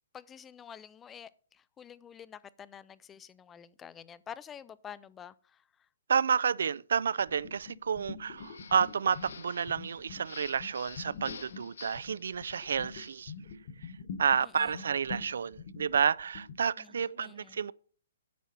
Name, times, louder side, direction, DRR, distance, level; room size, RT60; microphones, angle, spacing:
voice 1, 0.1-5.3 14.4-14.8 16.8-17.7, left 8 dB, 10° left, 0.3 m, -49 dB
voice 2, 6.1-13.3 14.2-17.7, right 6 dB, 65° right, 0.4 m, -30 dB
sound 1, 7.3-9.4 9.7-16.6, left 4 dB, 40° left, 1.2 m, -45 dB
sound 2, 8.4-13.2, left 6 dB, 80° left, 1.4 m, -50 dB
10.5 x 7.2 x 4.1 m
hypercardioid pair, 175°, 0 cm